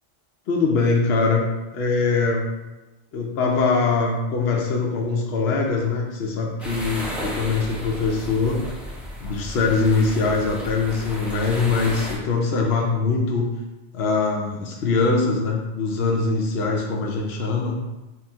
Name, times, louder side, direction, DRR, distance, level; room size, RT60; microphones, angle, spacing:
voice 1, 0.5-1.5 1.7-2.5 3.1-8.7 9.2-13.5 13.9-17.8, left 4 dB, 75° left, -1 dB, 0.8 m, -22 dB
sound 1, 6.6-12.2, equal, ahead, 0.5 m, -33 dB
3.2 x 3.0 x 3.4 m, 1.1 s
omnidirectional pair, 1.1 m